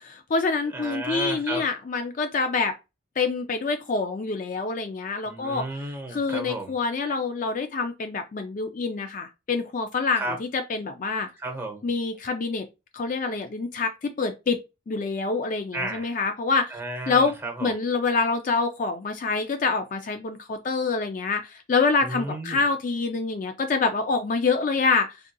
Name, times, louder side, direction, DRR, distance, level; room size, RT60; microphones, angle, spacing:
voice 1, 0.0-2.7 3.2-5.7 6.1-11.3 11.8-12.7 12.9-14.6 14.9-16.7 17.1-17.3 17.6-25.2, left 4 dB, 40° left, 0.3 m, -26 dB
voice 2, 0.7-1.6 5.2-6.7 10.1-10.4 11.4-11.8 15.7-16.2 16.7-17.7 22.0-22.6, right 2 dB, 10° right, 0.8 m, -33 dB
3.6 x 2.7 x 2.2 m
head